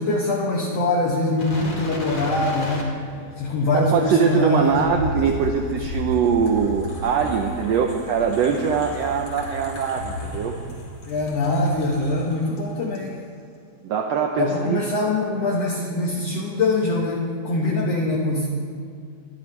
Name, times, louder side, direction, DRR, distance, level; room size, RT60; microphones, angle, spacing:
voice 1, 0.0-3.0 3.4-4.9 5.2-5.3 11.1-13.1 14.4-18.5, left 2 dB, 60° left, -2 dB, 2.1 m, -23 dB
sound 1, 1.4-12.6 12.9-13.1, left 1 dB, 40° left, 3.6 m, -34 dB
voice 2, 3.7-10.6 13.8-14.8, right 6 dB, 75° right, 3 dB, 1.6 m, -22 dB
24.0 x 12.5 x 3.2 m, 2.3 s
omnidirectional pair, 3.7 m